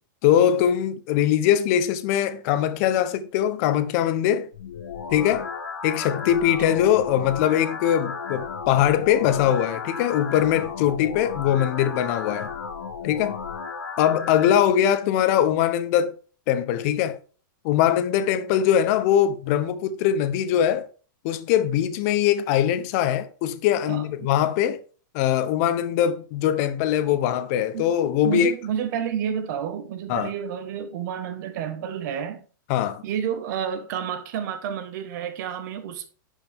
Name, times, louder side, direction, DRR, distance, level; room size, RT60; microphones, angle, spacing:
voice 1, 0.2-4.5 5.1-5.5 5.8-12.5 13.0-13.4 14.0-16.1 16.5-17.2 17.6-20.9 21.2-24.8 25.1-28.5 30.1-30.3 32.7-33.0, left 10 dB, 45° left, 0.9 m, -22 dB
sound 1, 4.5-14.5, left 5 dB, 90° left, 1.8 m, -34 dB
voice 2, 28.2-32.4 33.0-36.1, right 8 dB, 55° right, 1.4 m, -30 dB
10.5 x 5.2 x 3.6 m
supercardioid pair, 150°, 11 cm